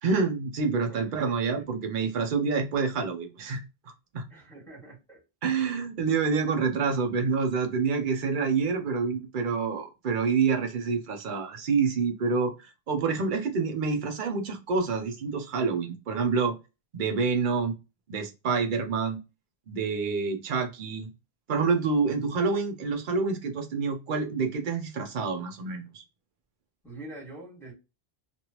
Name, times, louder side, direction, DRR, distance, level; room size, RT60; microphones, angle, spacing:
voice 1, 0.0-3.6 4.1-4.2 5.4-12.5 12.9-16.5 16.9-17.8 18.1-19.2 19.7-21.1 21.5-26.0, right 5 dB, 55° right, 0.8 m, -27 dB
voice 2, 4.3-5.2 26.8-27.7, right 2 dB, ahead, 1.8 m, -44 dB
3.3 x 2.5 x 2.8 m
omnidirectional pair, 1.1 m